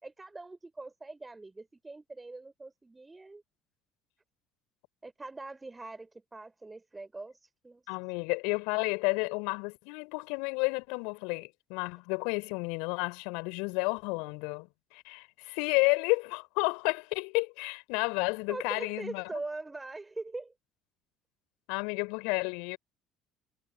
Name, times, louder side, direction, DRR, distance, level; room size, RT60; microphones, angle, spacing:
voice 1, 0.0-3.4 5.0-8.0 18.5-20.5, right 3 dB, 15° right, 3.8 m, -42 dB
voice 2, 7.9-19.4 21.7-22.8, left 32 dB, 65° left, 4.1 m, -31 dB
figure-of-eight pair, 55°, 0 cm